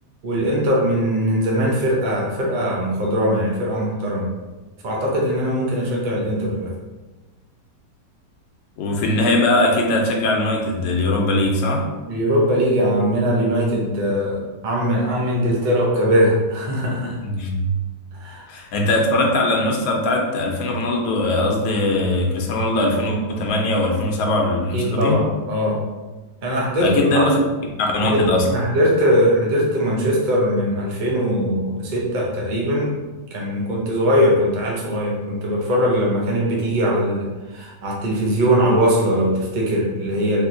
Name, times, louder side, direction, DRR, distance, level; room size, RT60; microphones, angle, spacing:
voice 1, 0.2-4.3 4.8-6.7 12.1-17.2 18.1-18.5 24.7-25.8 26.4-27.3 28.0-28.2 28.5-32.9 33.3-40.4, equal, 90° right, -3 dB, 0.4 m, -20 dB
voice 2, 8.8-11.9 17.2-17.6 18.5-25.2 26.8-27.4 27.9-28.5, left 2 dB, 75° left, 0 dB, 1.2 m, -20 dB
3.4 x 2.8 x 2.5 m, 1.2 s
omnidirectional pair, 1.9 m